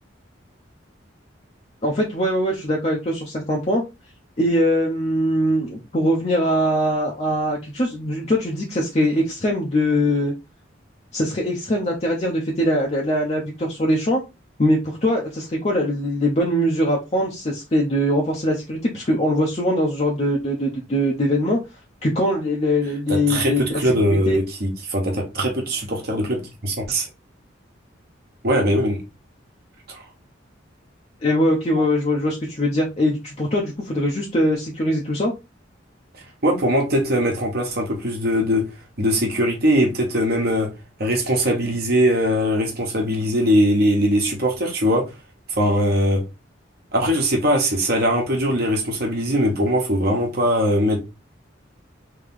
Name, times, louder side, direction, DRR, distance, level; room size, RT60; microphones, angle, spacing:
voice 1, 1.8-3.8 4.4-10.3 11.1-14.2 14.6-21.6 22.0-23.9 24.3-24.4 31.2-35.3, equal, 35° left, 0.6 m, -22 dB
voice 2, 23.1-27.1 28.4-29.0 29.9-30.0 31.7-31.8 36.4-38.6 39.0-40.7 41.0-45.0 45.5-46.2 46.9-51.0, equal, 55° right, 1.1 m, -21 dB
3.2 x 2.9 x 3.6 m
head